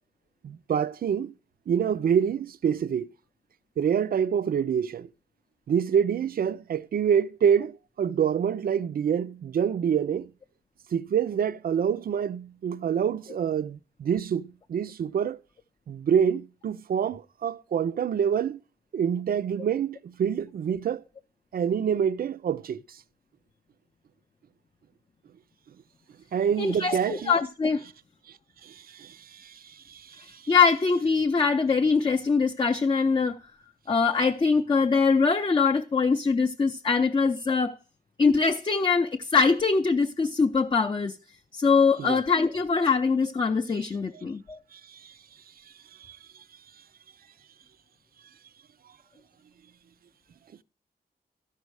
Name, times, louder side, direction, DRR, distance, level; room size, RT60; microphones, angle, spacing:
voice 1, 0.4-1.3 1.7-3.1 3.8-5.1 5.7-10.3 10.9-15.4 15.9-18.6 18.9-21.0 21.5-23.0 26.3-27.3 28.6-30.5 42.0-42.2 44.1-44.2 44.7-45.1 46.0-46.2, right 8 dB, 65° right, 0.4 m, -27 dB
voice 2, 26.6-27.8 30.5-33.4 33.9-37.7 38.2-41.2 41.5-44.6, left 5 dB, 30° left, 0.5 m, -23 dB
13.0 x 5.4 x 4.7 m
wide cardioid pair, 130°, 17 cm